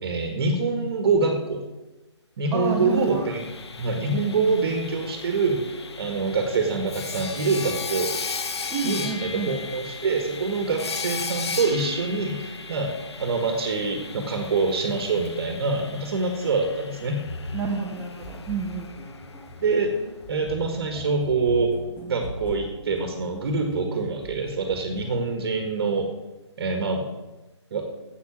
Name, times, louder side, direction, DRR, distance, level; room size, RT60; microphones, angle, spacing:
voice 1, 0.0-1.6 2.4-3.5 3.8-8.1 8.8-17.2 19.6-19.9 20.3-21.7 22.1-26.1 26.6-27.0 27.7-27.8, right 4 dB, 50° right, 4 dB, 1.7 m, -25 dB
Sawing, 2.5-20.3, left 5 dB, 65° left, 1.2 m, -36 dB
voice 2, 2.5-3.2 4.3-4.5 8.7-9.5 17.5-18.9, right 4 dB, 15° right, 3 dB, 1.3 m, -29 dB
sound 1, 17.3-25.1, left 1 dB, 15° left, 1.9 m, -39 dB
8.5 x 8.0 x 7.3 m, 1.1 s
figure-of-eight pair, 145°, 15 cm